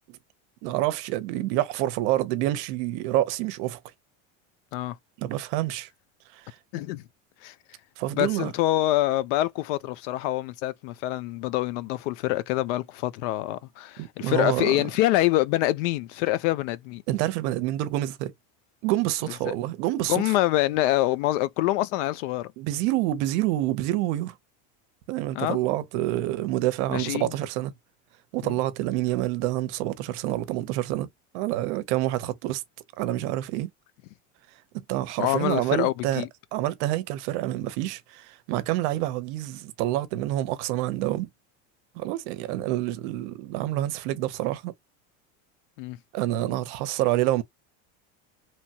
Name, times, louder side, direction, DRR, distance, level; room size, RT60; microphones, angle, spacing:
voice 1, 0.6-3.8 5.2-5.9 6.3-6.5 8.0-8.5 14.0-14.8 17.1-18.3 18.8-20.3 22.6-24.3 25.1-27.7 28.3-31.1 31.3-32.6 33.0-33.7 34.7-36.3 36.5-41.3 42.0-44.7 46.1-47.4, right 15 dB, 70° right, 0.7 m, -27 dB
voice 2, 6.7-7.0 7.4-7.5 8.1-17.0 19.5-19.6 20.1-22.5 25.3-25.6 26.9-27.3 28.4-28.6 35.2-36.3 45.8-46.0, left 16 dB, 80° left, 0.5 m, -25 dB
2.9 x 2.2 x 2.7 m
cardioid pair, 160°, 36 cm